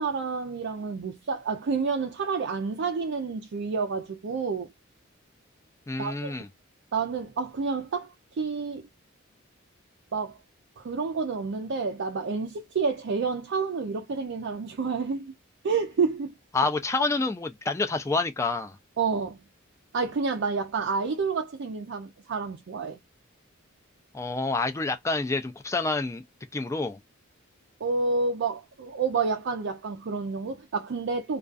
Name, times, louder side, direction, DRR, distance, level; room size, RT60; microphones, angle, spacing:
voice 1, 0.0-4.7 6.0-6.3 6.9-8.9 10.1-10.4 10.8-15.3 15.6-16.3 19.0-19.4 19.9-23.0 27.8-31.4, right 4 dB, 55° right, 0.4 m, -29 dB
voice 2, 5.9-6.5 16.5-18.8 24.1-26.2 26.5-27.0, left 3 dB, 15° left, 0.3 m, -28 dB
2.3 x 2.3 x 2.4 m
head